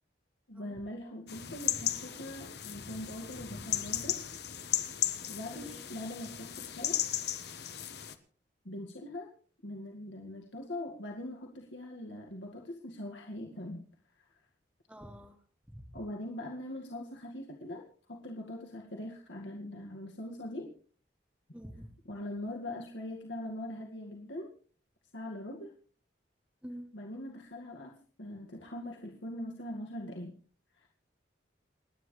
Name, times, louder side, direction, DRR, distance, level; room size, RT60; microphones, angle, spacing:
voice 1, 0.5-4.2 5.3-7.1 8.6-9.3 9.6-13.8 14.2-14.4 15.9-17.8 18.1-20.7 22.1-24.5 25.1-25.7 26.9-30.3 30.8-30.9, left 1 dB, 85° left, 1 dB, 2.0 m, -42 dB
sound 1, 1.3-8.1, left 10 dB, 65° left, 1.3 m, -36 dB
voice 2, 5.5-5.8 14.9-15.4 15.7-16.0 21.5-21.9 26.6-26.9, equal, 5° right, 6 dB, 1.5 m, -47 dB
29.5 x 9.9 x 3.3 m, 0.42 s
head